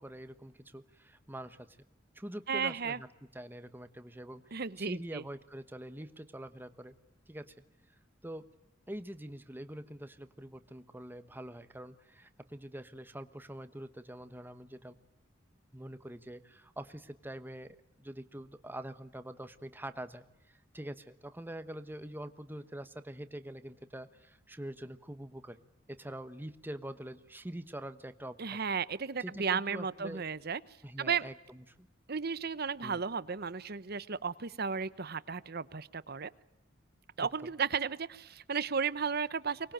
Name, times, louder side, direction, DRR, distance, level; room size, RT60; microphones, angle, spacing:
voice 1, 0.0-1.7 2.1-3.1 3.3-6.9 7.3-7.6 8.2-8.5 8.9-14.9 15.7-25.6 25.9-28.6 29.2-30.2 30.8-31.9 32.8-33.0 37.2-37.3, right 1 dB, 10° right, 10 dB, 1.2 m, -45 dB
voice 2, 2.5-3.0 4.5-5.2 28.4-30.6 31.0-31.2 32.1-36.3 37.2-39.7, right 6 dB, 55° right, 16 dB, 0.9 m, -34 dB
24.0 x 20.5 x 9.0 m, 0.91 s
head